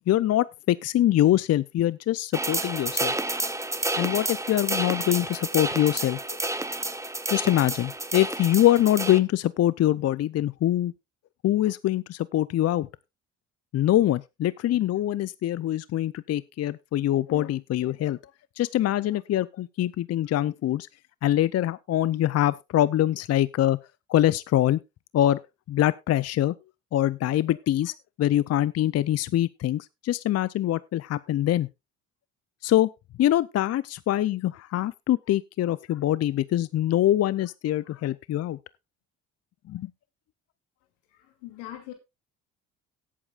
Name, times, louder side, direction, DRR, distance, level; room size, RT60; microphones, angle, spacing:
voice 1, 0.0-3.1 4.0-6.2 7.3-10.9 11.4-12.9 13.7-18.2 18.6-20.9 21.2-23.8 24.1-24.8 25.1-25.4 25.7-26.5 26.9-31.7 32.6-32.9 33.2-38.6 39.7-39.9, left 13 dB, 50° left, 0.5 m, -24 dB
sound 1, 2.3-9.2, right 2 dB, 10° right, 1.1 m, -30 dB
voice 2, 41.1-41.9, left 13 dB, 90° left, 2.7 m, -41 dB
17.5 x 8.5 x 2.4 m
supercardioid pair, 65°, 34 cm